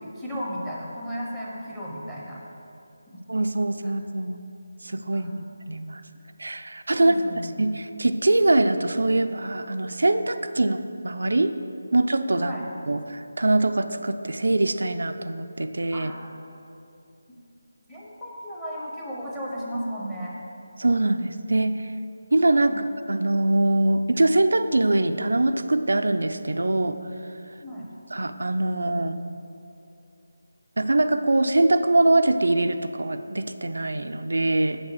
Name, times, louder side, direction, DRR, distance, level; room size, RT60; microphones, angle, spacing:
voice 1, 0.0-2.4 3.1-3.2 3.8-3.9 5.1-5.4 6.9-7.7 12.4-12.6 15.9-16.3 17.9-20.4 22.6-22.8 27.6-27.9, equal, ahead, -5 dB, 0.7 m, -35 dB
voice 2, 3.3-4.4 4.8-6.0 6.4-7.2 7.6-11.5 11.9-12.5 12.9-16.1 20.8-21.9 22.3-22.7 23.1-27.0 28.1-29.2 30.8-34.8, right 2 dB, 80° right, 8 dB, 0.5 m, -23 dB
7.5 x 6.0 x 6.4 m, 2.7 s
figure-of-eight pair, 175°, 0 cm